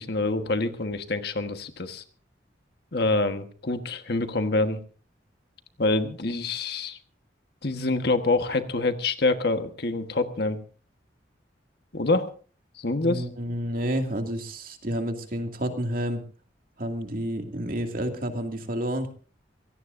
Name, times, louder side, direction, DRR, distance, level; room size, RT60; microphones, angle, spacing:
voice 1, 0.0-2.0 2.9-4.8 5.8-7.0 7.6-10.6 11.9-12.3 12.8-13.2, left 2 dB, 60° left, 8 dB, 1.4 m, -26 dB
voice 2, 13.0-16.2 16.8-19.1, equal, 50° right, 4 dB, 2.4 m, -30 dB
25.0 x 17.5 x 2.6 m, 0.40 s
head